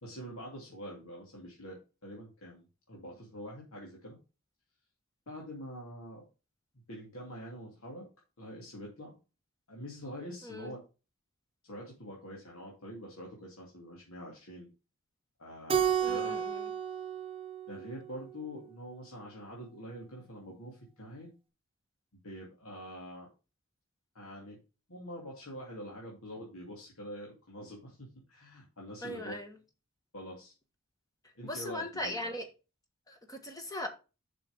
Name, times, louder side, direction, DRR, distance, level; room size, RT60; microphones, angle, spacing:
voice 1, 0.0-4.2 5.3-6.2 6.9-8.1 8.4-9.2 9.7-10.8 11.6-14.7 15.4-16.4 17.7-21.3 22.2-23.3 24.1-24.6 24.9-29.3 30.1-30.5 31.3-32.2, equal, 75° left, -2 dB, 2.6 m, -45 dB
Keyboard (musical), 15.7-18.3, right 8 dB, 25° right, 0.8 m, -32 dB
voice 2, 16.0-16.7 29.0-29.5 31.4-32.5 33.1-33.9, left 1 dB, 15° left, 5 dB, 1.5 m, -39 dB
7.1 x 6.0 x 5.1 m, 0.31 s
head